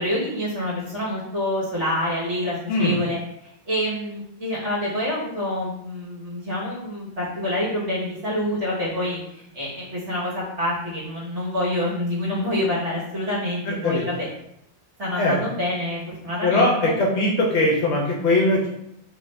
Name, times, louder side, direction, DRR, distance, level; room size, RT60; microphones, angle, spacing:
voice 1, 0.0-14.3 15.0-16.9, left 1 dB, 60° right, -7 dB, 1.5 m, -27 dB
voice 2, 13.7-14.0 15.2-15.4 16.4-18.7, left 1 dB, 65° left, -2 dB, 0.8 m, -20 dB
2.8 x 2.4 x 3.1 m, 0.78 s
omnidirectional pair, 1.4 m